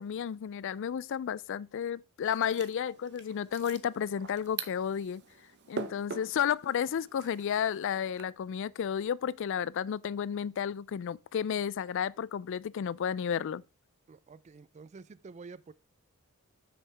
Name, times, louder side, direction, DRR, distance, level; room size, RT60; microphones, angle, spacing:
voice 1, 0.0-5.2 5.7-13.6, left 8 dB, 55° left, 0.3 m, -32 dB
sound 1, 2.2-8.2, right 5 dB, 50° right, 0.8 m, -44 dB
voice 2, 14.1-15.7, right 4 dB, 30° right, 0.3 m, -49 dB
7.7 x 6.3 x 3.3 m
head